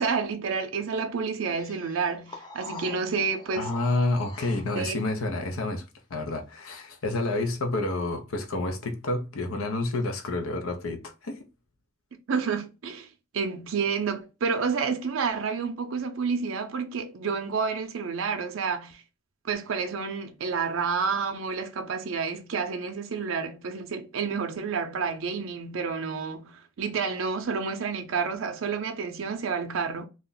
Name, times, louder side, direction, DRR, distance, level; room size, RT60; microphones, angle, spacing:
voice 1, 0.0-3.7 4.7-5.0 12.3-19.0 19.4-30.0, right 5 dB, 75° right, 0.5 m, -29 dB
sound 1, 1.6-4.9, left 3 dB, 20° left, 0.5 m, -44 dB
voice 2, 3.6-5.8 6.1-11.4, left 2 dB, 85° left, 0.6 m, -29 dB
2.4 x 2.1 x 3.8 m
head